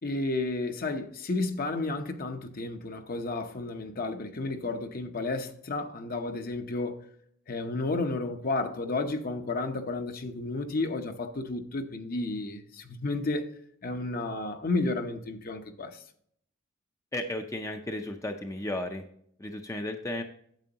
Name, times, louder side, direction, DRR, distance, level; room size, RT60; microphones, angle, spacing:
voice 1, 0.0-7.0 7.5-13.5 13.8-16.0, left 2 dB, 45° left, 0.8 m, -32 dB
voice 2, 17.1-19.0 19.4-20.2, left 1 dB, 15° left, 0.5 m, -34 dB
9.0 x 7.6 x 2.9 m
head